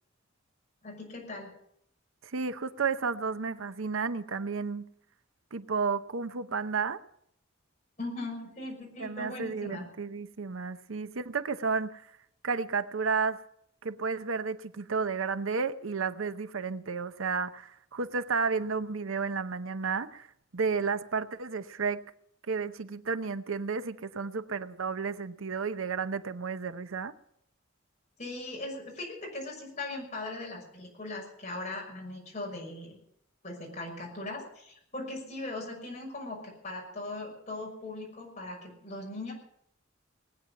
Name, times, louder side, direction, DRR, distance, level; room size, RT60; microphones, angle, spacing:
voice 1, 0.8-1.5 8.0-9.8 28.2-33.0 33.4-39.3, left 2 dB, 35° left, 5.9 m, -39 dB
voice 2, 2.2-4.9 5.5-7.0 9.0-12.0 12.4-13.4 13.8-20.3 20.5-22.0 22.5-27.1, right 5 dB, 85° right, 0.8 m, -32 dB
20.0 x 9.2 x 7.7 m
head